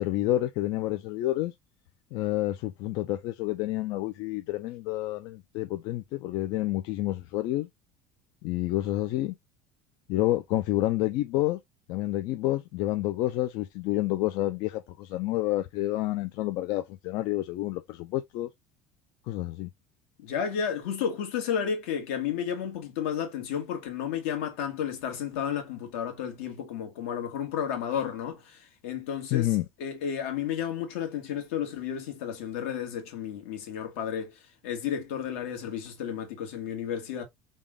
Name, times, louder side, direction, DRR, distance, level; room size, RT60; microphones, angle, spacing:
voice 1, 0.0-1.5 2.1-7.7 8.4-9.3 10.1-11.6 11.9-18.5 19.3-19.7 29.3-29.6, left 16 dB, 65° left, 0.5 m, -29 dB
voice 2, 20.2-37.2, left 8 dB, 85° left, 1.6 m, -32 dB
3.6 x 2.3 x 3.6 m
supercardioid pair, 115°, 7 cm